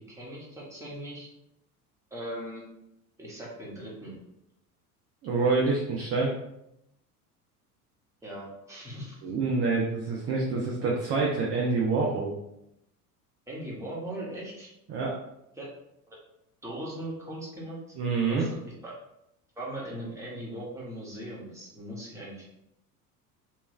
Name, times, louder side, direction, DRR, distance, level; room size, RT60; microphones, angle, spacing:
voice 1, 0.1-1.3 2.1-2.6 3.2-4.1 8.2-9.2 13.5-14.7 15.6-15.7 16.1-16.2 16.6-17.8 18.3-18.9 19.6-22.5, right 1 dB, 5° right, -6 dB, 1.5 m, -39 dB
voice 2, 5.2-6.3 9.2-12.4 14.9-15.2 18.0-18.5, right 4 dB, 30° right, -3 dB, 0.7 m, -27 dB
3.2 x 3.1 x 3.2 m, 0.82 s
figure-of-eight pair, 70°, 46 cm